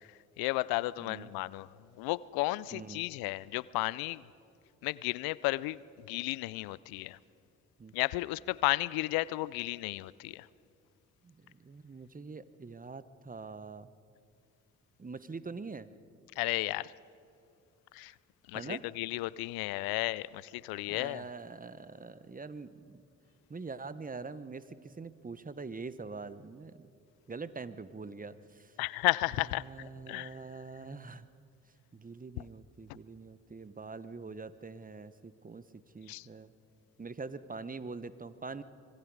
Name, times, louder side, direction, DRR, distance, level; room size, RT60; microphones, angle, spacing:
voice 1, 0.4-1.7 2.0-4.2 4.8-7.2 7.9-10.5 16.4-16.9 17.9-18.1 18.5-21.2 28.8-30.4 32.4-32.5 36.1-36.3, left 20 dB, 75° left, 21 dB, 0.5 m, -33 dB
voice 2, 1.0-1.3 2.7-3.1 7.8-7.9 11.2-13.9 15.0-15.9 18.5-18.8 20.9-23.0 23.5-26.9 27.3-28.7 29.6-31.3 31.9-35.6 35.9-36.5 37.0-38.6, right 4 dB, 25° right, 15 dB, 1.0 m, -44 dB
25.5 x 21.5 x 4.8 m, 2.6 s
hypercardioid pair, 45°, 36 cm